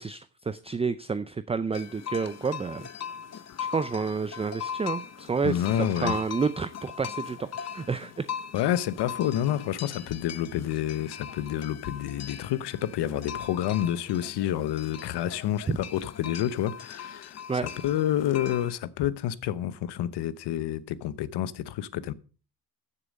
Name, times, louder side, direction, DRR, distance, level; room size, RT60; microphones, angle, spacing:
voice 1, 0.0-2.9 3.6-8.3 15.7-15.8 17.5-17.7, right 5 dB, 15° right, 0.4 m, -30 dB
sound 1, 1.7-18.7, left 8 dB, 40° left, 0.8 m, -40 dB
voice 2, 5.4-6.2 8.5-22.1, left 11 dB, 85° left, 0.9 m, -29 dB
14.5 x 7.0 x 5.2 m
cardioid pair, 120°, 40 cm